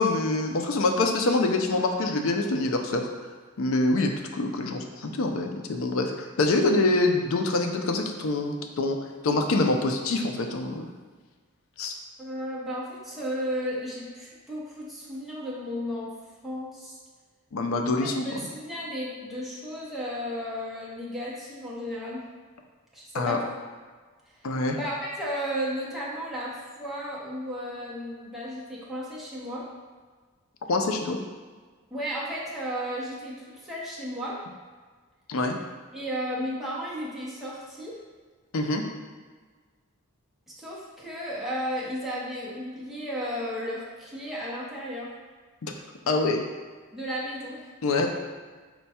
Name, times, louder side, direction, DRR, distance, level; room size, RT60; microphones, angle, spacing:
voice 1, 0.0-3.1 3.6-9.0 9.2-10.9 11.8-11.9 17.5-18.3 23.1-23.4 24.4-24.8 30.7-31.2 35.3-35.6 38.5-38.8 45.6-45.7 46.1-46.4 47.8-48.1, left 2 dB, 70° left, 4 dB, 0.4 m, -25 dB
voice 2, 12.2-16.1 16.4-17.0 18.0-22.2 22.9-23.5 24.7-29.6 31.9-34.4 35.9-38.0 40.5-45.1 46.9-47.6, equal, ahead, -7 dB, 0.7 m, -34 dB
4.4 x 2.2 x 4.1 m, 1.4 s
head